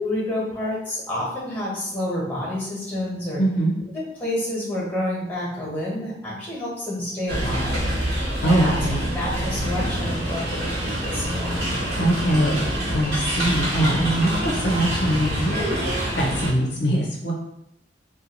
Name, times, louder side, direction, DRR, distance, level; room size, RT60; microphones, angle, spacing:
voice 1, 0.0-3.4 3.9-7.8 8.4-8.7 9.1-11.7, left 1 dB, 10° left, -6 dB, 1.0 m, -29 dB
voice 2, 3.4-3.8 8.4-9.1 11.9-12.6 12.9-15.6 16.2-17.3, right 1 dB, 70° left, -2 dB, 0.6 m, -22 dB
sound 1, 7.3-16.5, equal, 60° right, 0.9 m, -26 dB
2.5 x 2.3 x 2.9 m, 0.79 s
head